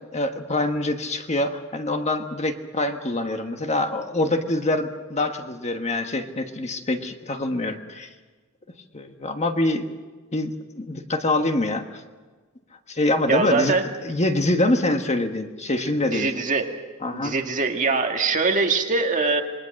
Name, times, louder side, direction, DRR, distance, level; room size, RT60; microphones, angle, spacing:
voice 1, 0.1-8.1 8.9-9.8 10.3-12.0 12.9-13.7 14.0-16.3 17.0-17.3, left 2 dB, 30° left, 6 dB, 1.4 m, -25 dB
voice 2, 13.3-13.9 16.1-16.7 17.1-19.4, right 4 dB, 35° right, 3 dB, 1.9 m, -22 dB
27.0 x 21.0 x 6.5 m, 1.3 s
head